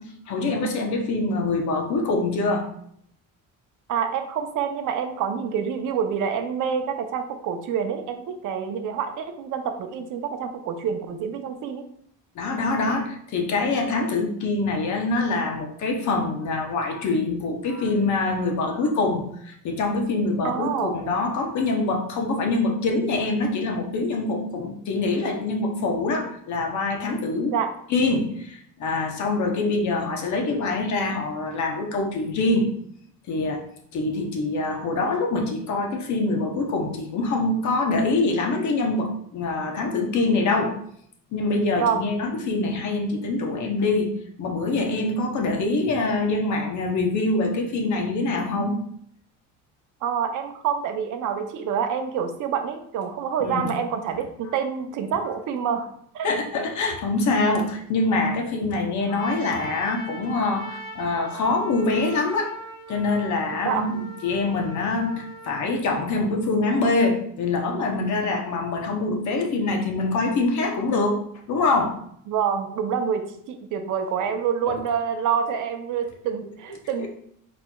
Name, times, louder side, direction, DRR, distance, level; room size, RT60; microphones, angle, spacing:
voice 1, 0.0-2.7 12.3-27.5 27.9-32.7 33.3-33.6 33.9-40.8 41.3-44.1 44.4-48.8 53.4-53.7 56.2-62.6 62.9-63.9 64.2-71.2 71.5-72.0 74.2-74.3 74.7-74.8 77.0-77.1, left 3 dB, 50° left, 2 dB, 0.9 m, -24 dB
voice 2, 3.9-11.9 20.4-20.9 27.5-27.7 41.7-42.1 50.0-55.9 56.1-56.3 63.6-63.9 72.3-77.1, right 7 dB, 55° right, 7 dB, 0.7 m, -27 dB
Trumpet, 59.1-65.7, right 1 dB, 10° left, 1.4 m, -40 dB
4.3 x 4.3 x 2.2 m, 0.67 s
cardioid pair, 130°, 38 cm